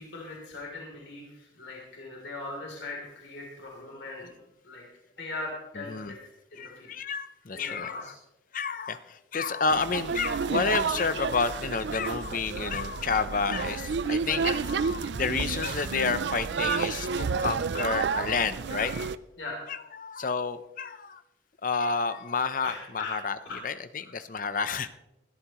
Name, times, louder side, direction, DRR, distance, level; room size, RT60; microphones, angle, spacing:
voice 1, 0.0-4.3 4.6-4.8 5.2-6.2 6.5-6.9 7.5-8.1 19.4-19.6 22.6-23.2 23.4-23.6 24.0-24.1, left 2 dB, 75° left, -2 dB, 3.3 m, -40 dB
voice 2, 5.8-6.1 6.6-8.1 8.5-19.1 19.7-21.2 21.6-23.4 23.6-24.9, left 5 dB, 45° left, 12 dB, 0.7 m, -30 dB
sound 1, 9.7-19.2, right 5 dB, 65° right, 0.4 m, -30 dB
20.0 x 13.5 x 3.1 m, 0.92 s
head